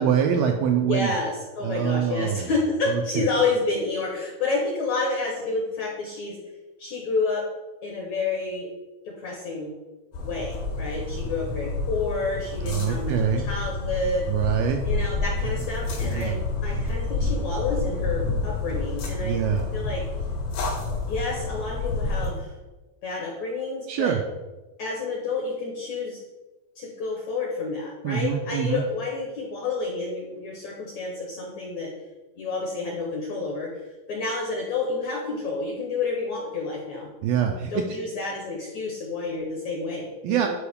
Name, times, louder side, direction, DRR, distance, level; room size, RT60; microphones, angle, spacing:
voice 1, 0.0-1.1 1.6-2.5 2.9-3.3 12.6-13.5 14.3-14.8 16.1-16.4 19.2-19.6 23.9-24.2 28.0-28.8 37.2-37.8 40.2-40.5, right 8 dB, 85° right, 3 dB, 2.1 m, -24 dB
voice 2, 0.8-6.3 6.8-7.4 7.8-8.7 9.2-9.7 10.2-13.1 13.4-14.2 14.8-20.0 21.1-22.5 23.0-24.1 24.8-26.2 26.8-31.9 32.4-33.8 34.1-37.1 37.7-40.5, left 3 dB, 70° left, -1 dB, 1.7 m, -29 dB
sound 1, 10.1-22.3, left 3 dB, 90° left, 4.2 m, -29 dB
11.5 x 4.7 x 3.5 m, 1.1 s
omnidirectional pair, 4.6 m